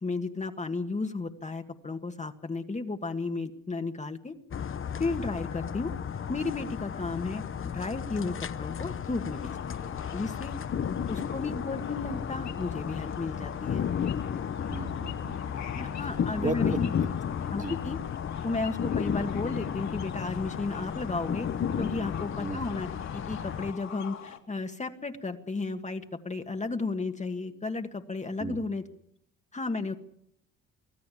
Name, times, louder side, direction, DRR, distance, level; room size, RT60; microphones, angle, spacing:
voice 1, 0.0-4.3 5.0-5.9 6.3-9.8 10.1-10.6 11.1-13.9 15.8-16.9 17.5-18.0 18.4-21.5 21.8-28.8 29.5-29.9, left 3 dB, 25° left, 6 dB, 1.7 m, -33 dB
sound 1, 4.5-23.7, left 8 dB, 45° left, 1.0 m, -33 dB
sound 2, 9.3-24.4, left 8 dB, 65° left, 2.9 m, -45 dB
voice 2, 14.7-15.6 16.4-17.1 17.6-17.8 22.4-22.6 28.4-28.6, right 3 dB, 25° right, 5 dB, 2.6 m, -35 dB
25.0 x 15.5 x 8.6 m, 0.70 s
cardioid pair, 90°, 30 cm